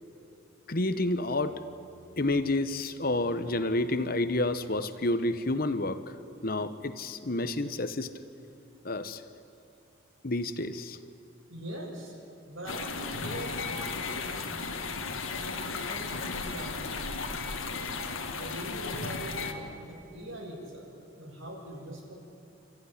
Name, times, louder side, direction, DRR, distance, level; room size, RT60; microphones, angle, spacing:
voice 1, 0.7-1.6 2.2-6.0 6.4-8.1 8.8-9.2 10.2-11.0, left 2 dB, 45° left, 11 dB, 1.1 m, -29 dB
voice 2, 11.5-12.1 12.5-14.8 15.1-17.2 18.4-22.1, right 1 dB, 75° right, -1 dB, 6.5 m, -42 dB
sound 1, 12.7-19.5, left 4 dB, 80° left, 1.8 m, -35 dB
29.5 x 14.5 x 9.9 m, 2.8 s
head